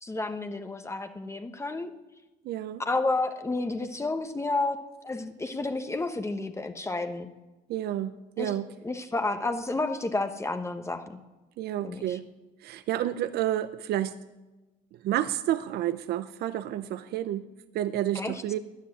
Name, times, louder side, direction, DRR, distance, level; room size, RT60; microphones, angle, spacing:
voice 1, 0.0-1.9 2.8-4.8 5.0-7.3 8.4-8.5 8.8-11.2 11.8-12.2 18.1-18.4, left 2 dB, 15° left, 7 dB, 1.2 m, -31 dB
voice 2, 2.4-2.8 7.7-8.6 11.6-12.3 12.6-14.2 15.0-17.4 17.7-18.6, right 12 dB, 70° right, 12 dB, 0.7 m, -30 dB
13.5 x 10.5 x 9.9 m, 1.1 s
cardioid pair, 110°, 17 cm